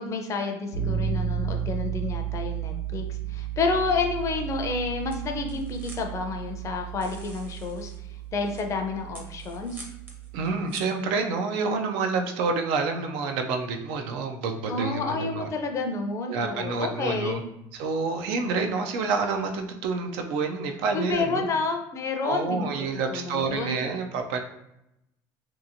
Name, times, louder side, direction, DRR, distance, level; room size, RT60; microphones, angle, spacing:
voice 1, 0.0-3.0 3.3-7.9 8.3-9.9 14.7-17.4 20.9-23.8, left 4 dB, 35° left, 4 dB, 0.4 m, -29 dB
sound 1, 0.7-10.5, right 9 dB, 85° left, 0.7 m, -33 dB
sound 2, 4.2-11.5, right 2 dB, 20° right, 0.6 m, -50 dB
voice 2, 10.3-15.5 16.3-17.4 17.7-21.5 22.2-24.4, right 4 dB, 80° right, 5 dB, 0.4 m, -28 dB
2.8 x 2.4 x 2.5 m, 0.84 s
cardioid pair, 120°, 9 cm